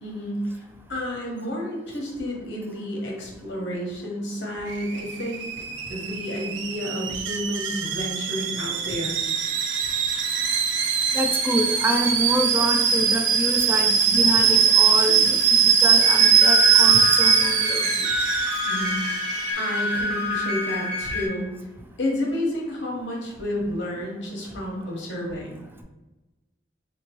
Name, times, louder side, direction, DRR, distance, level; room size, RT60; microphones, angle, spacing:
voice 1, 0.0-5.4 5.9-9.2 18.7-21.5 22.0-25.6, left 1 dB, 70° left, -1 dB, 1.0 m, -30 dB
Alarm / Boiling, 4.7-19.5, right 6 dB, 75° right, 0.4 m, -21 dB
sound 1, 8.8-20.6, equal, 25° left, 0.9 m, -39 dB
voice 2, 11.1-18.1, right 1 dB, 10° right, 3 dB, 0.4 m, -27 dB
sound 2, 16.0-21.3, left 2 dB, 45° right, 1.3 m, -28 dB
3.4 x 2.9 x 2.9 m, 1.1 s
head